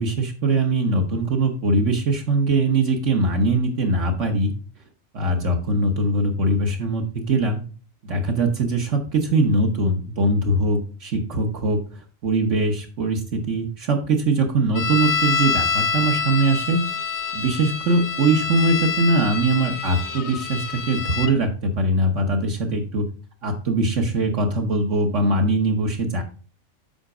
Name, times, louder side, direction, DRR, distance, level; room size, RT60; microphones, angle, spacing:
voice 1, 0.0-4.5 5.1-7.6 8.0-16.8 17.3-23.0 23.4-26.2, right 2 dB, 65° right, 2 dB, 1.4 m, -22 dB
sound 1, 14.7-21.3, left 5 dB, 75° left, 1.3 m, -26 dB
8.0 x 5.1 x 4.9 m, 0.39 s
omnidirectional pair, 1.4 m